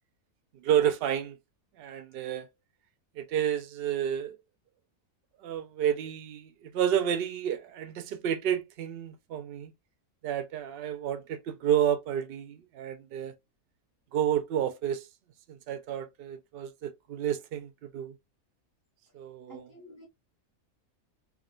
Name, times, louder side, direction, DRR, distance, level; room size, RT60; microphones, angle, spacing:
voice 1, 0.6-1.4 1.8-2.5 3.2-4.4 5.4-9.7 10.2-13.3 14.1-15.1 15.5-18.1 19.1-19.7, right 9 dB, 70° right, 0.5 m, -30 dB
voice 2, 19.5-20.0, equal, 15° right, 0.8 m, -50 dB
3.5 x 2.4 x 2.3 m
omnidirectional pair, 1.5 m